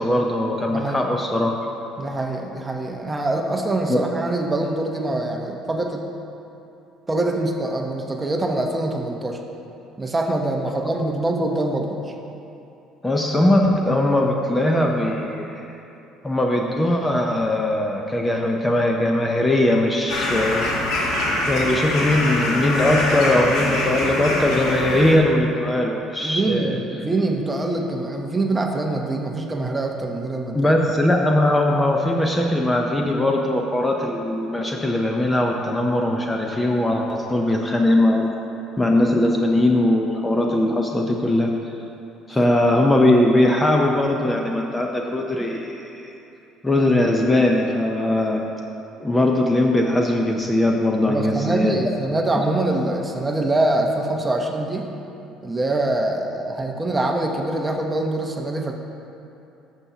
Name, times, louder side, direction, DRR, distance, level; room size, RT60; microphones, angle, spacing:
voice 1, 0.0-1.5 3.9-4.0 13.0-15.6 16.2-21.0 21.5-26.8 30.5-38.3 38.8-41.5 42.3-46.1 46.6-48.4 49.0-51.7, left 1 dB, 10° left, 1 dB, 0.6 m, -20 dB
voice 2, 0.7-1.1 2.0-6.0 7.1-9.4 10.0-12.1 26.2-30.8 42.3-42.5 51.1-54.9 55.4-58.7, right 2 dB, 15° right, 2 dB, 0.8 m, -24 dB
sound 1, 20.1-25.1, left 1 dB, 80° left, 1.6 m, -24 dB
12.5 x 7.0 x 2.8 m, 2.8 s
cardioid pair, 120°, 0 cm